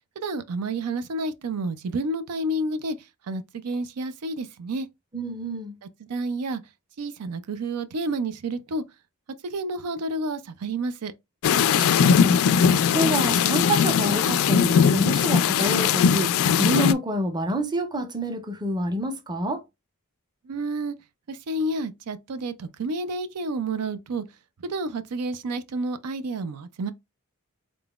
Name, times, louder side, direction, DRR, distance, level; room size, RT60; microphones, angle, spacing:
voice 1, 0.2-3.0 3.3-4.9 6.0-6.6 7.0-8.8 9.4-11.1 20.4-20.9 21.3-24.2 24.6-26.9, right 2 dB, 90° right, 0.5 m, -30 dB
voice 2, 5.1-5.8 11.6-12.4 12.9-19.6, right 1 dB, 20° right, 0.6 m, -28 dB
sound 1, 11.4-16.9, left 7 dB, 65° left, 0.3 m, -20 dB
3.8 x 3.8 x 2.3 m
head